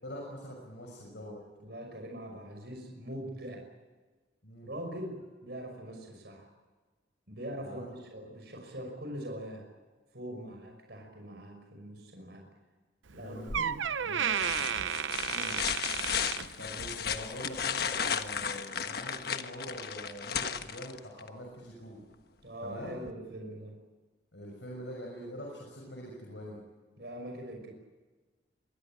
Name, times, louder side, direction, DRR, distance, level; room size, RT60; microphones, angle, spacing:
voice 1, 0.0-1.4 4.4-4.7 7.6-7.9 10.3-10.6 13.1-13.5 16.6-22.0 22.6-23.0 24.3-26.6, equal, 70° left, -1 dB, 6.2 m, -44 dB
voice 2, 1.6-3.6 4.6-6.5 7.3-9.7 10.1-12.4 13.1-13.8 14.0-15.0 15.3-15.7 22.4-23.8 27.0-27.7, right 1 dB, 60° right, 3 dB, 5.9 m, -42 dB
Door, 13.1-13.2 13.5-17.0 17.4-17.7 18.4-18.5, right 8 dB, 90° right, 0.7 m, -33 dB
sound 1, 13.5-13.9 14.3-21.3 23.1-23.2, left 7 dB, 55° left, 1.4 m, -34 dB
25.5 x 20.0 x 9.0 m, 1.3 s
head